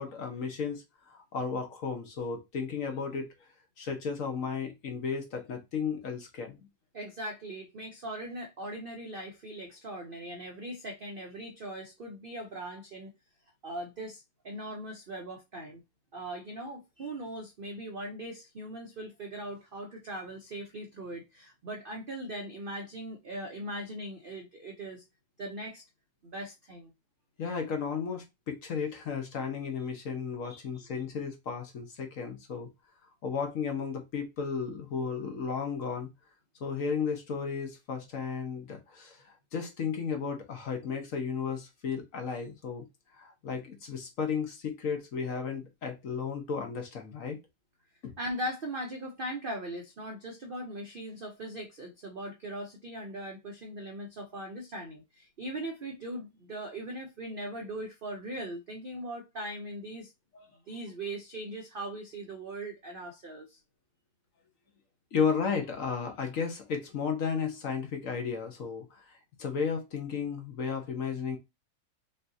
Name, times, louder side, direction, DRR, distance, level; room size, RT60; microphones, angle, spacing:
voice 1, 0.0-3.3 3.8-6.6 27.4-32.7 33.2-36.1 36.6-39.2 39.5-42.9 43.1-47.4 48.0-48.1 60.3-60.4 65.1-69.1 69.4-71.4, left 6 dB, 55° left, 1.1 m, -34 dB
voice 2, 6.9-13.1 13.6-15.8 16.1-25.0 25.4-25.8 26.2-26.9 30.4-30.9 48.2-60.1 60.7-63.6, right 1 dB, 60° right, 0.5 m, -40 dB
5.4 x 2.8 x 2.6 m
omnidirectional pair, 1.8 m